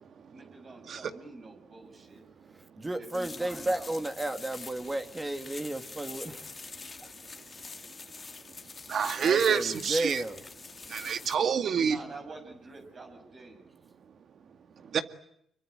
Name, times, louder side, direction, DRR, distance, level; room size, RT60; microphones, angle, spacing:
voice 1, 0.3-2.2 2.7-3.9 11.8-13.6, right 3 dB, 45° right, 3 dB, 7.0 m, -47 dB
voice 2, 2.8-6.4 6.7-7.1 9.2-10.4, right 1 dB, 20° right, 7 dB, 2.4 m, -33 dB
sound 1, 3.1-11.4, left 4 dB, 30° left, 2.2 m, -45 dB
voice 3, 8.9-10.2 10.9-12.0 14.9-15.0, right 7 dB, 60° right, 10 dB, 2.1 m, -26 dB
26.5 x 23.5 x 9.3 m, 0.73 s
cardioid pair, 90°, 0 cm